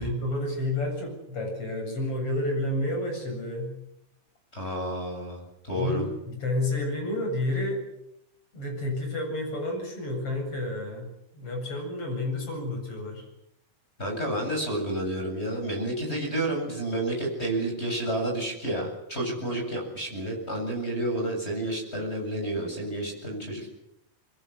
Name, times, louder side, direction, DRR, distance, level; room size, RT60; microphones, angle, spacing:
voice 1, 0.0-3.7 5.7-7.8 8.5-13.3 19.3-19.6, left 1 dB, 35° left, 3 dB, 8.5 m, -30 dB
voice 2, 4.5-6.0 14.0-23.7, right 1 dB, 15° left, 2 dB, 8.0 m, -30 dB
26.5 x 22.0 x 8.2 m, 0.84 s
omnidirectional pair, 4.5 m